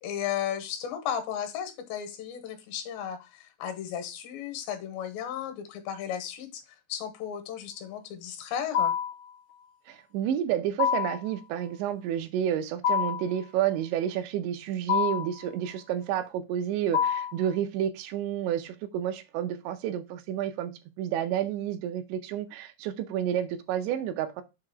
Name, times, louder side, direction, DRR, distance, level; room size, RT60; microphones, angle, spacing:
voice 1, 0.0-6.6 6.9-8.9, left 9 dB, 80° left, 3.0 m, -34 dB
sound 1, 8.7-9.2 10.8-11.3 12.8-13.3 14.9-15.4 16.9-17.4, left 8 dB, 60° left, 1.0 m, -26 dB
voice 2, 9.9-20.7 21.0-24.4, right 10 dB, 80° right, 2.8 m, -30 dB
7.4 x 2.8 x 4.7 m
omnidirectional pair, 5.3 m